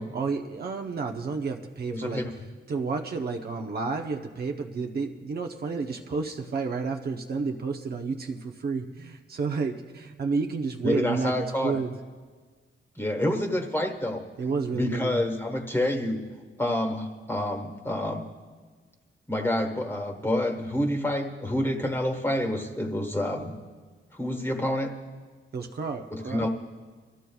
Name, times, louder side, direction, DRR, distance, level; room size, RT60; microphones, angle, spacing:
voice 1, 0.0-2.3 2.7-11.9 14.4-15.2 25.5-26.5, right 4 dB, 50° right, 3 dB, 0.7 m, -31 dB
voice 2, 1.9-2.3 10.8-11.8 13.0-14.2 14.7-16.2 16.6-18.3 19.3-23.5 24.1-24.9 26.1-26.5, left 1 dB, 10° left, 2 dB, 1.3 m, -28 dB
25.0 x 14.0 x 2.3 m, 1.4 s
wide cardioid pair, 175°, 21 cm